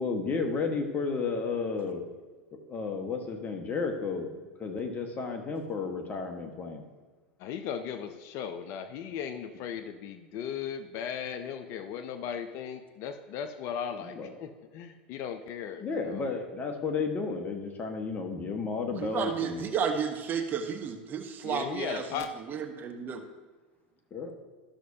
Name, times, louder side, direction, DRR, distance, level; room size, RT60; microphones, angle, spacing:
voice 1, 0.0-2.0 2.5-4.3 4.6-6.8 14.0-14.3 15.8-19.7 24.1-24.3, left 4 dB, 30° left, 4 dB, 1.4 m, -32 dB
voice 2, 7.4-16.3 21.4-22.3, left 8 dB, 55° left, 10 dB, 0.6 m, -37 dB
voice 3, 18.9-22.0 22.5-23.2, right 6 dB, 35° right, 6 dB, 1.0 m, -32 dB
13.0 x 6.1 x 2.8 m, 1.4 s
hypercardioid pair, 90°, 5 cm